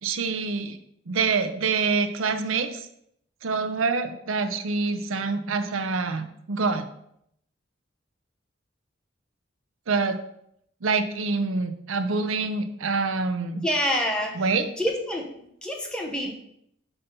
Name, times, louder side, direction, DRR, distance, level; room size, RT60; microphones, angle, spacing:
voice 1, 0.0-0.8 1.1-2.9 3.4-6.9 9.9-10.2 10.8-13.6 14.4-14.6, right 4 dB, 90° right, 9 dB, 0.6 m, -26 dB
voice 2, 13.6-15.3 15.6-16.3, equal, 5° left, 0 dB, 0.9 m, -27 dB
5.6 x 4.1 x 5.2 m, 0.72 s
head